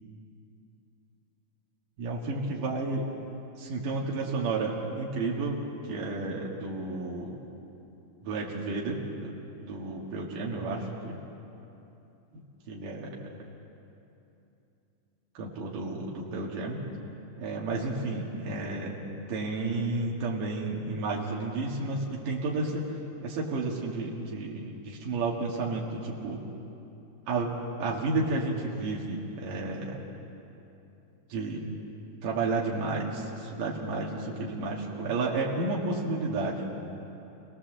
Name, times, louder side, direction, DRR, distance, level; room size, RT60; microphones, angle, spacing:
voice 1, 2.0-3.1 3.6-5.6 5.9-7.4 8.2-9.3 9.6-11.2 12.7-13.2 15.4-16.8 17.4-19.0 19.3-22.9 23.2-26.4 27.3-27.5 27.8-30.0 31.3-31.7 32.2-36.7, right 3 dB, 85° right, -3 dB, 3.6 m, -31 dB
28.0 x 18.5 x 7.4 m, 2.9 s
omnidirectional pair, 3.7 m